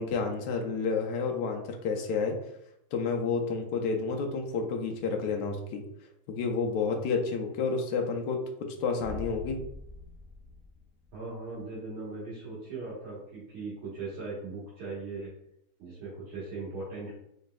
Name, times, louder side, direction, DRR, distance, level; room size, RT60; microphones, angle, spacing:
voice 1, 0.0-2.4 2.9-5.8 6.3-9.6, left 4 dB, 80° left, 3 dB, 1.0 m, -30 dB
sound 1, 9.0-11.6, left 2 dB, 40° right, 1.6 m, -44 dB
voice 2, 11.1-15.3 15.8-17.2, right 3 dB, 70° right, -9 dB, 2.1 m, -39 dB
4.2 x 4.0 x 2.2 m, 0.78 s
omnidirectional pair, 2.4 m